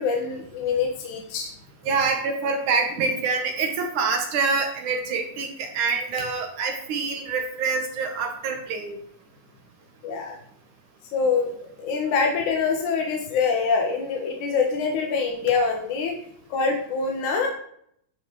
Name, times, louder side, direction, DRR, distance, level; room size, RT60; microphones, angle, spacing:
voice 1, 0.0-1.5 10.0-10.4 11.1-16.2 16.5-17.5, left 5 dB, 80° left, 2 dB, 3.1 m, -25 dB
voice 2, 1.9-8.9, right 4 dB, 85° right, 3 dB, 3.2 m, -26 dB
13.5 x 9.6 x 4.9 m, 0.67 s
omnidirectional pair, 3.4 m